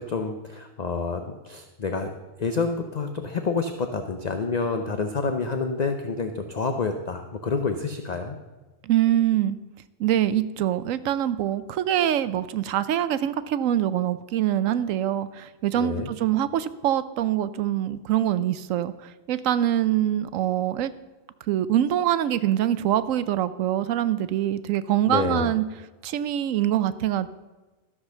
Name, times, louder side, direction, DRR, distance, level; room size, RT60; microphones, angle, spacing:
voice 1, 0.0-2.1 2.4-8.4 15.8-16.1 25.1-25.5, left 4 dB, 40° left, 6 dB, 0.7 m, -28 dB
voice 2, 8.8-9.6 10.0-20.9 21.5-25.6 26.0-27.3, right 11 dB, 80° right, 14 dB, 1.0 m, -24 dB
13.5 x 6.2 x 6.6 m, 1.2 s
omnidirectional pair, 1.4 m